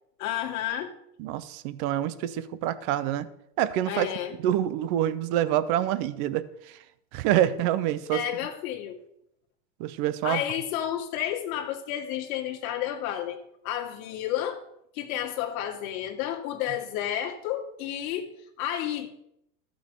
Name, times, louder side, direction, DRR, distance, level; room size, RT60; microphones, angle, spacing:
voice 1, 0.2-0.9 3.9-4.4 8.1-9.0 10.2-13.4 13.6-14.6 14.9-19.1, left 11 dB, 60° left, 2 dB, 2.4 m, -31 dB
voice 2, 1.2-3.3 3.6-4.1 4.4-6.8 7.1-8.2 9.8-10.4, right 12 dB, 25° right, 15 dB, 0.3 m, -26 dB
14.0 x 6.3 x 6.7 m, 0.77 s
supercardioid pair, 145°, 48 cm